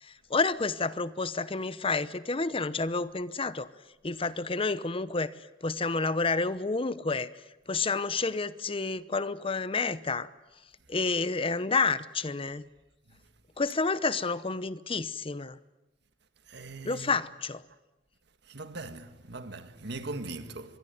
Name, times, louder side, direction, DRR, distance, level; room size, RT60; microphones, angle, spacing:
voice 1, 0.0-3.7 4.0-5.3 5.6-7.3 7.7-10.3 10.9-12.6 13.6-15.6 16.8-17.6, left 4 dB, 30° left, 0.8 m, -29 dB
voice 2, 16.5-17.1 18.4-20.8, right 2 dB, 65° right, 1.8 m, -40 dB
25.5 x 22.5 x 9.4 m
head